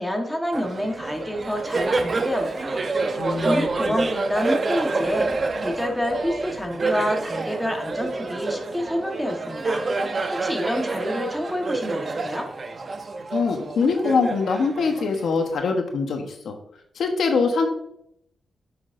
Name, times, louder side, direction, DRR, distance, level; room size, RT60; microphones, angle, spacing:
voice 1, 0.0-2.8 3.1-5.3 5.6-12.5, equal, ahead, 2 dB, 1.3 m, -28 dB
Laughter, 0.5-15.5, right 3 dB, 45° right, 0.7 m, -28 dB
voice 2, 3.2-4.0 13.3-16.6 17.0-17.7, left 4 dB, 80° left, 4 dB, 1.1 m, -23 dB
8.8 x 6.3 x 2.6 m, 0.75 s
cardioid pair, 85°, 0 cm